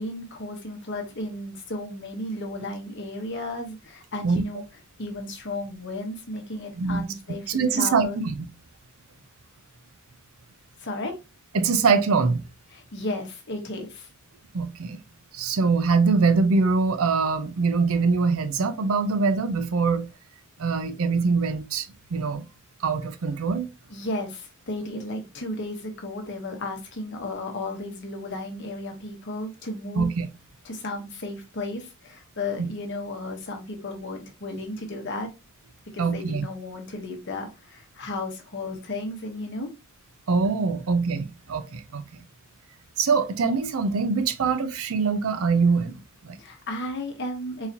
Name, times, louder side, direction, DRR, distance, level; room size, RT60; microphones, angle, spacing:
voice 1, 0.0-4.6 5.0-8.2 10.8-11.2 12.7-14.1 23.9-30.1 30.6-35.3 35.9-39.7 46.4-47.7, left 2 dB, 50° left, 0.9 m, -34 dB
voice 2, 7.5-8.4 11.5-12.4 14.5-15.0 15.3-20.1 20.6-22.4 22.8-23.7 30.0-30.3 32.6-32.7 36.0-36.5 40.3-42.0 43.0-45.9 46.3-46.4, right 4 dB, 65° right, 0.5 m, -23 dB
4.0 x 2.9 x 2.6 m
head